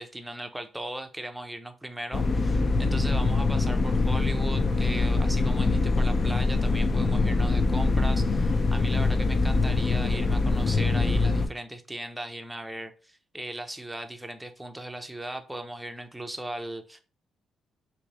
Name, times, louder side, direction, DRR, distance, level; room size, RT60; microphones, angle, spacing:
voice 1, 0.0-17.0, right 1 dB, 5° right, 0.5 m, -38 dB
sound 1, 2.1-11.5, left 3 dB, 40° left, 0.4 m, -24 dB
3.0 x 2.6 x 4.0 m
cardioid pair, 90°, 0 cm